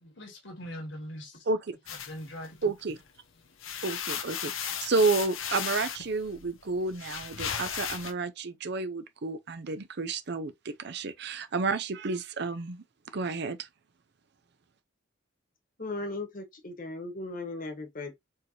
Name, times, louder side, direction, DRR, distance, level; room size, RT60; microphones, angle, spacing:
voice 1, 0.0-1.4 1.9-2.7, equal, 65° left, 1.8 m, -42 dB
voice 2, 1.5-1.8 2.6-3.0 3.8-12.8 13.1-13.6, right 3 dB, 55° right, 0.6 m, -31 dB
sound 1, 1.9-3.1 3.4-8.1, left 8 dB, 90° left, 0.8 m, -36 dB
voice 3, 15.8-18.1, left 2 dB, 45° left, 1.3 m, -37 dB
4.6 x 3.2 x 2.8 m
head